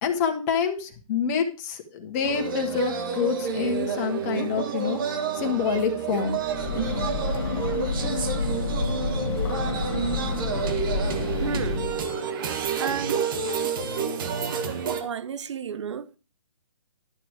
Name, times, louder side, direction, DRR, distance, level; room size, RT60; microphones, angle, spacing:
voice 1, 0.0-5.0 5.3-6.4, left 7 dB, 25° left, 1.5 m, -27 dB
sound 1, 2.2-15.0, right 6 dB, 40° right, 1.3 m, -29 dB
Breathing / Train, 6.4-12.1, left 4 dB, 45° left, 1.3 m, -29 dB
voice 2, 11.4-11.8 12.8-13.2 14.4-14.6 15.0-16.2, right 7 dB, 55° right, 0.7 m, -32 dB
11.5 x 6.1 x 4.7 m
hypercardioid pair, 150°, 18 cm